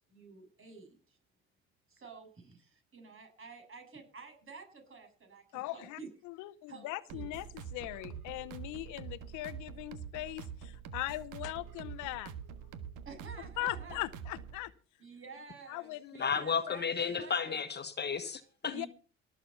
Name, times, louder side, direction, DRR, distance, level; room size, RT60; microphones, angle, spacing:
voice 1, 0.1-1.2 1.9-6.1 6.7-7.3 13.0-14.1 15.0-16.9 17.2-17.6 18.7-18.9, right 4 dB, 45° right, 7.7 m, -50 dB
voice 2, 5.5-6.0 6.2-12.3 13.6-14.7 15.7-16.3 16.6-16.8 18.7-18.9, left 18 dB, 75° left, 0.8 m, -40 dB
sound 1, 7.1-14.6, right 7 dB, 80° right, 1.5 m, -45 dB
voice 3, 16.2-18.9, left 6 dB, 35° left, 1.4 m, -33 dB
18.5 x 7.7 x 5.7 m
supercardioid pair, 80°, 30 cm